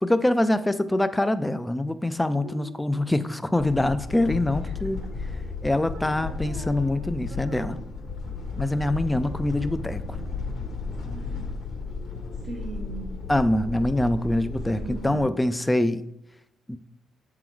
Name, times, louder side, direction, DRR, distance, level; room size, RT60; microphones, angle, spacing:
voice 1, 0.0-5.0 5.6-7.8 8.6-10.0 13.3-16.0 16.7-16.8, left 1 dB, 10° left, 12 dB, 0.4 m, -24 dB
voice 2, 2.3-3.0 4.6-4.7 5.9-7.8 11.0-11.5 12.4-13.1 14.7-15.3, right 2 dB, 85° right, -1 dB, 1.2 m, -41 dB
sound 1, 3.6-15.2, left 4 dB, 65° left, 1.4 m, -34 dB
7.3 x 3.8 x 4.6 m, 0.84 s
cardioid pair, 90°, 0 cm